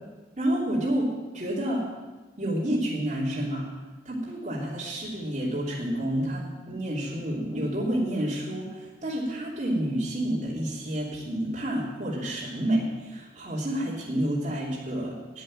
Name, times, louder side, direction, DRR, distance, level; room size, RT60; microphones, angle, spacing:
voice 1, 0.4-1.9 2.4-3.7 4.0-15.4, right 1 dB, 45° right, -7 dB, 3.0 m, -29 dB
11.0 x 9.6 x 7.5 m, 1.2 s
head